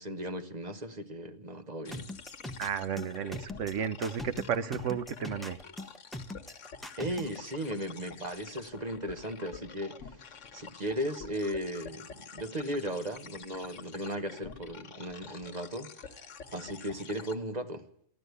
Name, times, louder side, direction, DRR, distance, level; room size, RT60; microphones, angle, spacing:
voice 1, 0.0-2.1 7.0-10.0 10.5-16.2 16.5-17.8, equal, 35° right, 1.2 m, -36 dB
sound 1, 1.8-17.3, left 6 dB, 75° left, 1.4 m, -48 dB
sound 2, 1.9-7.4, left 1 dB, ahead, 0.9 m, -41 dB
voice 2, 2.6-5.6, right 7 dB, 80° right, 1.2 m, -33 dB
14.5 x 12.0 x 8.2 m
omnidirectional pair, 1.3 m